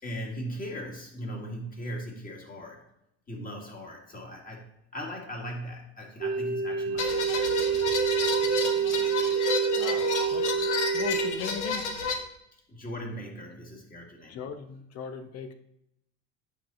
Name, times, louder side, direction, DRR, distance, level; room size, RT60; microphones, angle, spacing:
voice 1, 0.0-2.9 3.3-7.9 10.0-10.1 10.8-10.9 12.7-14.4, equal, 25° left, 0 dB, 2.0 m, -39 dB
sound 1, 6.2-11.3, right 7 dB, 35° right, 1.0 m, -27 dB
sound 2, 7.0-12.2, left 4 dB, 85° left, 1.0 m, -30 dB
voice 2, 9.8-10.7 10.9-11.9 14.3-15.5, left 6 dB, 45° left, 8 dB, 1.0 m, -38 dB
8.4 x 5.7 x 2.6 m, 0.78 s
hypercardioid pair, 75°, 34 cm